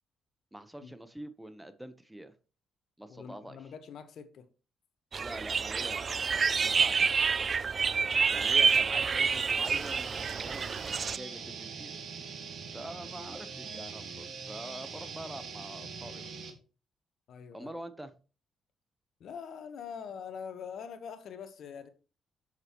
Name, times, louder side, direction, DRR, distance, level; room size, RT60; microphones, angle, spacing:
voice 1, 0.5-2.3 3.0-3.6 5.2-7.2 8.3-11.9 12.7-16.4 17.5-18.1, right 1 dB, 5° right, 0.9 m, -45 dB
voice 2, 3.1-4.5 7.9-8.1 17.3-17.7 19.2-21.9, left 7 dB, 65° left, 1.2 m, -44 dB
sound 1, 5.1-11.2, right 5 dB, 40° right, 0.3 m, -28 dB
sound 2, 9.6-16.5, right 5 dB, 65° right, 2.0 m, -42 dB
7.8 x 7.6 x 3.0 m
cardioid pair, 90°, 0 cm